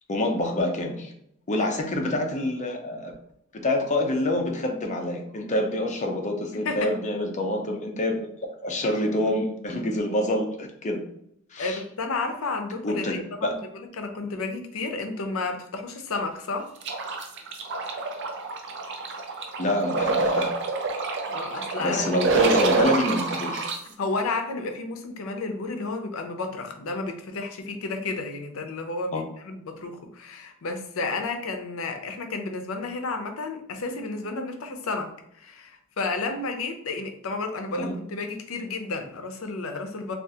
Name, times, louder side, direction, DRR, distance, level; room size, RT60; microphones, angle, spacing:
voice 1, 0.1-1.1 1.5-3.1 3.5-8.2 8.6-11.0 11.5-11.8 12.8-13.5 19.6-20.5 21.8-23.7 29.1-29.2 37.8-37.9, left 1 dB, 35° left, 2 dB, 0.6 m, -26 dB
voice 2, 6.5-7.0 11.6-16.7 21.3-22.2 24.0-40.1, left 3 dB, 85° left, 5 dB, 0.6 m, -32 dB
sound 1, 16.8-23.8, right 3 dB, 60° right, 0.5 m, -27 dB
3.5 x 2.4 x 2.7 m, 0.74 s
head